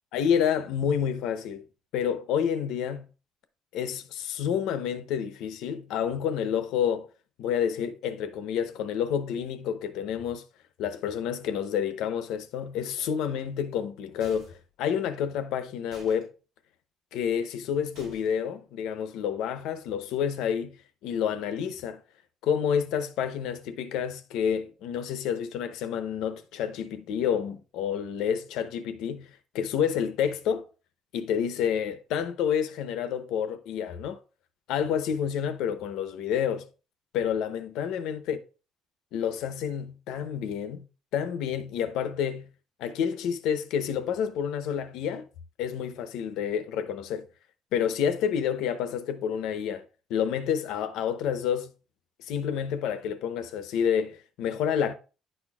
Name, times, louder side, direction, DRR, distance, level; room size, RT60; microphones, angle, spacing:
voice 1, 0.1-1.6 1.9-3.1 3.7-7.1 7.4-10.4 10.8-16.3 17.1-20.8 21.0-22.0 22.4-30.6 31.1-34.2 34.7-36.7 37.1-38.4 39.1-40.9 41.1-42.5 42.8-45.3 45.6-47.3 47.7-49.8 50.1-51.7 52.2-54.9, left 8 dB, 85° left, 0.7 m, -29 dB
sound 1, 14.2-14.7 15.9-16.2 17.9-18.4, equal, 45° right, 4.0 m, -50 dB
10.5 x 4.4 x 2.3 m
cardioid pair, 180°, 0 cm